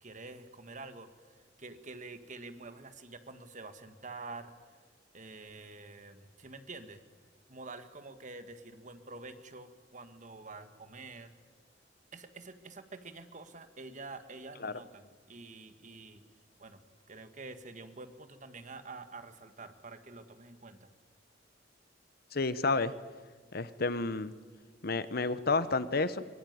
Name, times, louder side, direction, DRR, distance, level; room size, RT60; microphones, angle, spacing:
voice 1, 0.0-4.5 5.1-7.0 7.5-11.3 12.1-16.2 16.6-16.8 17.1-20.9, right 3 dB, 40° right, 10 dB, 1.8 m, -47 dB
voice 2, 22.3-22.9 23.5-24.3 24.8-26.3, left 3 dB, 55° left, 15 dB, 1.0 m, -30 dB
24.0 x 22.5 x 9.4 m, 1.5 s
head